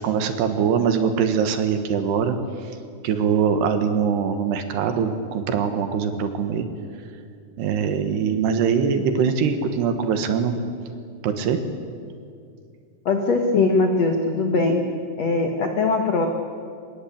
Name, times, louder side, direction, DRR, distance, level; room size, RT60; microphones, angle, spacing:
voice 1, 0.0-2.4 3.0-6.6 7.6-10.5 11.2-11.6, right 7 dB, 65° right, 8 dB, 3.2 m, -22 dB
voice 2, 13.0-14.8 15.2-16.3, left 3 dB, 85° left, 4 dB, 1.4 m, -21 dB
25.0 x 21.0 x 8.7 m, 2.3 s
omnidirectional pair, 5.6 m